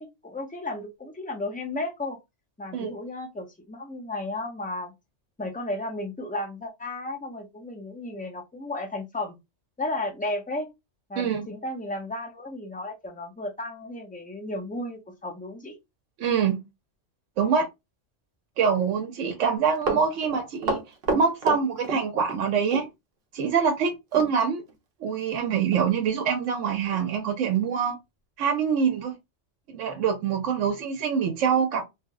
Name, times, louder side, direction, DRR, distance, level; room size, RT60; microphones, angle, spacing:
voice 1, 0.0-2.2 2.6-4.9 5.4-9.4 9.8-10.7 11.1-15.8, left 2 dB, 10° left, 0.4 m, -34 dB
voice 2, 11.2-11.5 16.2-16.6 17.4-17.7 18.6-20.8 21.1-22.9 23.3-24.6 25.0-28.0 28.4-29.2 29.7-31.8, right 6 dB, 85° right, 1.0 m, -25 dB
Run, 19.5-22.5 22.7-22.9 24.1-24.3 24.7-24.8 25.3-25.4 25.7-25.9 26.4-26.5, right 3 dB, 55° right, 0.8 m, -29 dB
2.8 x 2.0 x 3.5 m
omnidirectional pair, 1.2 m